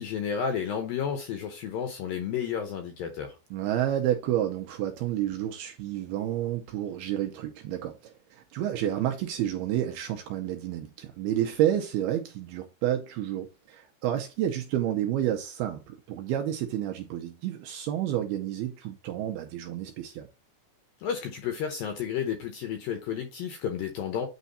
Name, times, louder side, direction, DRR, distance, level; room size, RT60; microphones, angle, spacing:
voice 1, 0.0-3.4 21.0-24.3, left 8 dB, 75° left, 2.2 m, -32 dB
voice 2, 3.5-20.3, right 11 dB, 80° right, 2.3 m, -30 dB
9.2 x 3.4 x 4.1 m
omnidirectional pair, 5.1 m